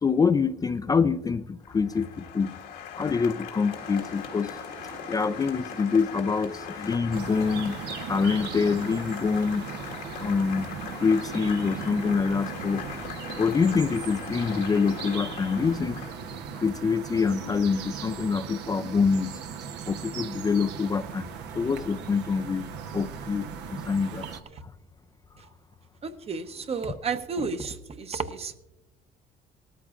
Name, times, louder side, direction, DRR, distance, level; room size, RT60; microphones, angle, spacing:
voice 1, 0.0-2.5 3.0-7.8 8.1-9.7 10.2-10.7 10.9-12.8 13.4-16.0 16.5-19.3 19.9-24.3, left 5 dB, 20° left, 10 dB, 0.4 m, -26 dB
Applause, 1.6-16.4, left 8 dB, 85° left, 1.8 m, -40 dB
sound 1, 3.7-16.6, right 4 dB, 65° right, 1.8 m, -47 dB
sound 2, 7.1-24.4, right 7 dB, 85° right, 1.0 m, -38 dB
voice 2, 26.0-28.6, right 4 dB, 35° right, 9 dB, 0.9 m, -32 dB
19.0 x 13.5 x 2.5 m, 0.94 s
cardioid pair, 110°, 17 cm